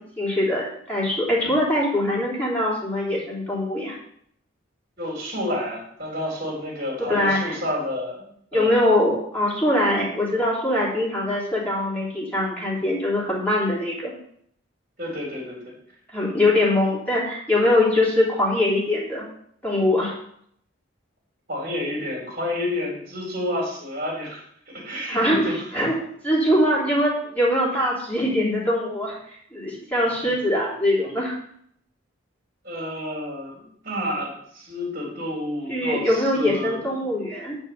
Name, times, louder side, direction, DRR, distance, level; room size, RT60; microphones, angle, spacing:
voice 1, 0.2-3.9 7.1-7.6 8.5-14.1 16.1-19.2 19.6-20.1 25.1-25.4 25.7-25.9 26.2-29.1 29.5-31.3 35.7-37.6, left 1 dB, 10° left, -5 dB, 3.5 m, -22 dB
voice 2, 5.0-8.7 15.0-15.6 21.5-25.6 30.2-30.3 32.6-37.1, left 1 dB, 45° right, -1 dB, 3.7 m, -30 dB
10.5 x 4.5 x 7.3 m, 0.68 s
head